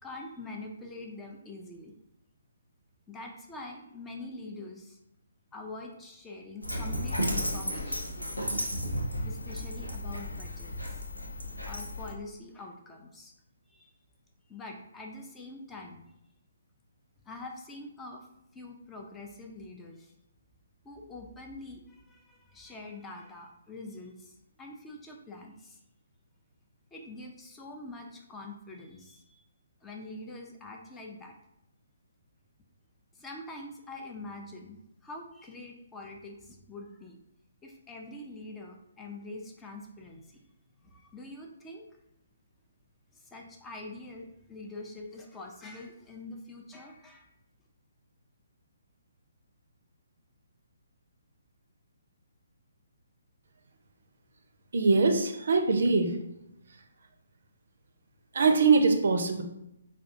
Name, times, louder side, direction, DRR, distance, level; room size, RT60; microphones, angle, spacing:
voice 1, 0.0-1.9 3.1-5.0 5.5-8.2 9.2-11.0 11.7-13.3 13.7-13.9 14.5-16.0 17.3-18.3 18.5-20.1 20.8-25.8 26.9-29.4 29.8-31.4 33.1-37.2 37.6-40.5 40.8-41.9 43.1-47.3, left 2 dB, 10° left, 1 dB, 0.4 m, -45 dB
Dog, 6.6-12.1, equal, 85° left, 0.7 m, -33 dB
voice 2, 54.7-56.2 58.3-59.4, right 4 dB, 55° right, 5 dB, 0.5 m, -23 dB
4.9 x 2.3 x 2.6 m, 0.83 s
figure-of-eight pair, 135°, 0 cm